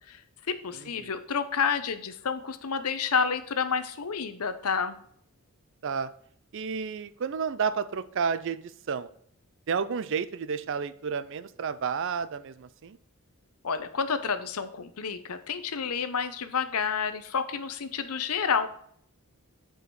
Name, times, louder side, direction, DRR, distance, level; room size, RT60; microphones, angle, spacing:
voice 1, 0.5-5.0 13.6-18.7, left 6 dB, 80° left, 10 dB, 0.8 m, -29 dB
voice 2, 6.5-9.1 9.7-13.0, right 6 dB, 55° right, 15 dB, 0.4 m, -31 dB
7.6 x 5.0 x 4.7 m, 0.64 s
head